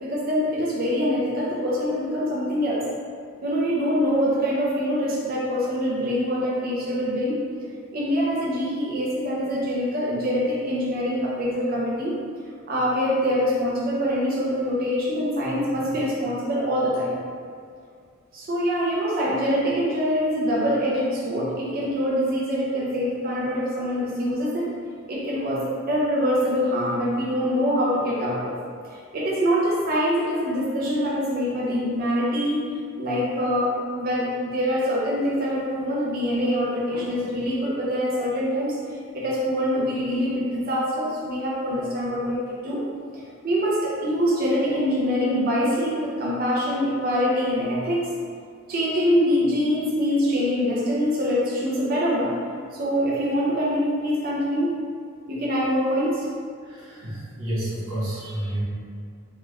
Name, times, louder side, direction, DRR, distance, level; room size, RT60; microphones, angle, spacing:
voice 1, 0.0-2.8 3.4-7.4 7.9-12.2 12.7-17.2 18.3-24.7 25.1-28.6 28.8-32.7 33.0-38.8 39.1-42.8 43.1-48.1 48.7-52.4 52.7-54.7 55.3-56.3, equal, 45° right, -5 dB, 0.5 m, -24 dB
voice 2, 56.6-58.6, right 1 dB, 90° right, -7 dB, 1.0 m, -30 dB
3.0 x 2.2 x 3.1 m, 2.1 s
head